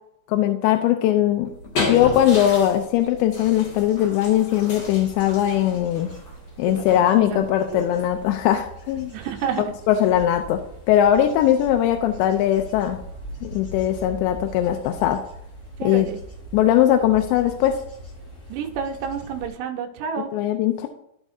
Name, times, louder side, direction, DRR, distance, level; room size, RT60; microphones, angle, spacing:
voice 1, 0.3-1.5 1.8-6.1 6.6-9.1 9.9-10.6 10.9-13.0 13.4-15.2 15.8-16.1 16.5-17.8 20.3-20.9, left 11 dB, 85° left, 5 dB, 2.8 m, -20 dB
sound 1, 1.3-9.4, left 3 dB, 50° left, 2.6 m, -34 dB
Bird / Insect / Wind, 4.5-19.5, right 1 dB, 30° left, 2.7 m, -41 dB
voice 2, 6.6-7.0 7.3-7.4 7.7-7.8 9.1-9.7 15.8-16.2 18.5-20.4, right 7 dB, 75° right, 2 dB, 3.0 m, -29 dB
14.0 x 5.4 x 2.7 m, 0.77 s
omnidirectional pair, 5.2 m